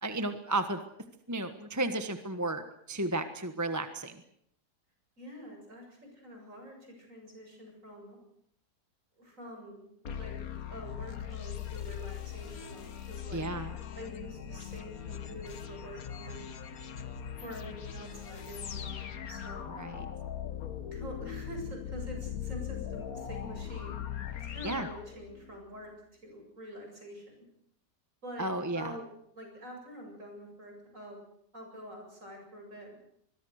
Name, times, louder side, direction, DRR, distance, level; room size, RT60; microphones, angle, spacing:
voice 1, 0.0-0.8 1.3-4.2 13.3-13.7 19.7-20.1 24.6-24.9 28.4-28.9, right 2 dB, 10° right, 8 dB, 1.2 m, -33 dB
voice 2, 5.2-8.2 9.2-10.4 10.7-13.4 14.0-16.5 17.4-19.7 20.9-24.0 24.4-25.9 26.2-27.5 28.2-29.0 29.3-31.2 31.5-33.0, equal, 50° right, 2 dB, 8.1 m, -46 dB
sound 1, 10.0-25.7, left 9 dB, 60° left, 1.7 m, -40 dB
25.0 x 22.0 x 6.6 m, 0.72 s
omnidirectional pair, 1.7 m